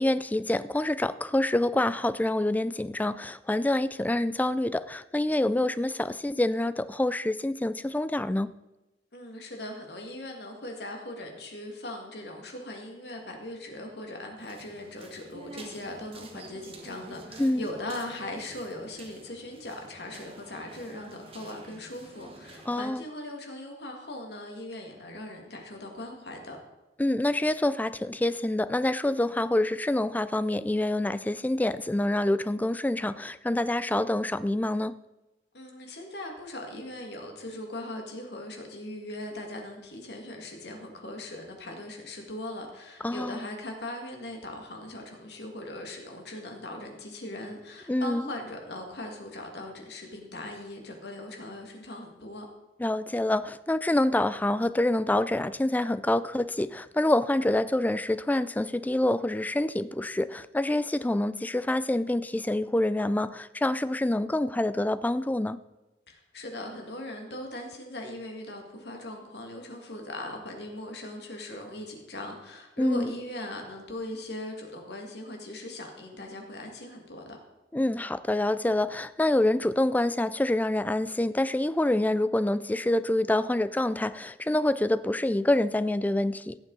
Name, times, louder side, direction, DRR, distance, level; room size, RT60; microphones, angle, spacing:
voice 1, 0.0-8.5 17.4-17.6 22.7-23.0 27.0-35.0 43.0-43.4 47.9-48.2 52.8-65.6 72.8-73.1 77.7-86.6, left 1 dB, 10° left, 0.3 m, -26 dB
voice 2, 9.1-26.6 35.5-52.5 66.1-77.4, left 1 dB, 65° left, 2.1 m, -39 dB
sound 1, 14.4-22.9, right 2 dB, 35° right, 1.4 m, -48 dB
16.5 x 7.2 x 4.0 m
head